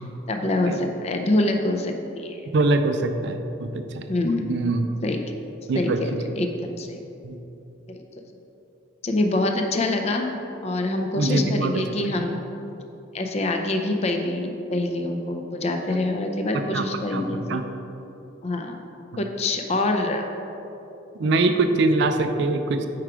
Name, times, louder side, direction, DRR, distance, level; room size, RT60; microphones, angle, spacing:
voice 1, 0.3-2.4 4.1-4.7 5.0-5.2 5.7-7.0 7.9-8.0 9.0-10.3 10.6-12.4 13.1-17.6 18.4-18.8 19.2-20.3 21.2-21.3, left 2 dB, 35° left, 4 dB, 0.4 m, -25 dB
voice 2, 2.5-4.1 4.5-4.9 5.7-6.0 7.2-7.4 11.2-11.7 12.0-12.2 16.5-16.8 17.1-17.2 17.5-17.6 21.2-22.9, right 2 dB, 60° right, 7 dB, 0.3 m, -23 dB
4.8 x 4.5 x 4.9 m, 2.9 s
head